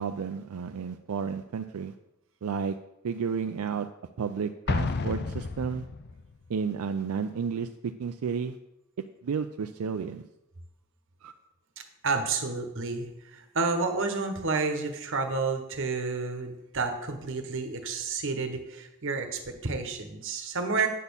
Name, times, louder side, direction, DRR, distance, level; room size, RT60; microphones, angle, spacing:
voice 1, 0.0-1.9 2.4-2.8 3.0-3.9 4.2-5.9 6.5-8.6 9.2-10.2 11.2-11.3, right 6 dB, 85° right, 7 dB, 0.4 m, -32 dB
Explosion, 4.7-6.3, left 4 dB, 50° left, 0.5 m, -31 dB
voice 2, 11.8-20.9, right 4 dB, 60° right, 6 dB, 1.2 m, -30 dB
9.3 x 4.2 x 7.0 m, 0.89 s
head